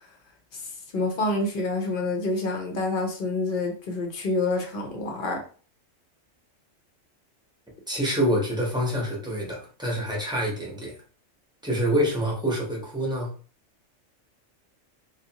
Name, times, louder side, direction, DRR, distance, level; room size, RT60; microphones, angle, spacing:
voice 1, 0.9-5.4, left 2 dB, 50° left, 2 dB, 0.7 m, -27 dB
voice 2, 7.9-10.9 11.6-13.3, equal, 5° right, -3 dB, 0.6 m, -26 dB
2.6 x 2.4 x 2.8 m, 0.40 s
omnidirectional pair, 1.3 m